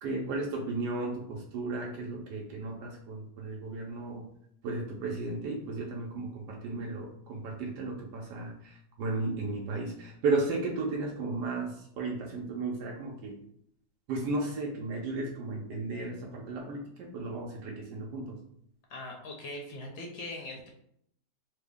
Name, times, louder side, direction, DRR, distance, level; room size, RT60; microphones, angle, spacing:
voice 1, 0.0-4.3 4.6-13.4 14.1-18.4, right 3 dB, 85° right, -1 dB, 1.2 m, -34 dB
voice 2, 18.9-20.7, left 2 dB, 80° left, 1 dB, 1.1 m, -41 dB
3.4 x 2.1 x 3.4 m, 0.71 s
omnidirectional pair, 1.8 m